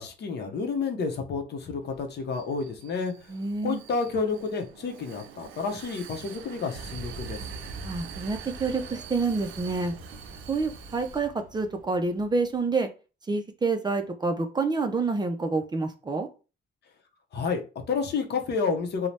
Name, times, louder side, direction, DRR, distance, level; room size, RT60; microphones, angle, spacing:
voice 1, 0.0-3.1 3.6-7.4 17.3-19.1, left 4 dB, 60° left, 4 dB, 0.7 m, -30 dB
Vehicle, 1.8-11.2, right 9 dB, 85° right, 0.4 m, -46 dB
voice 2, 3.3-3.8 7.8-9.9 10.5-12.9 13.3-16.3, right 3 dB, 20° right, 5 dB, 0.4 m, -28 dB
sound 1, 6.7-12.6, right 2 dB, 40° right, 0.8 m, -43 dB
2.6 x 2.0 x 3.2 m, 0.33 s
cardioid pair, 90°, 20 cm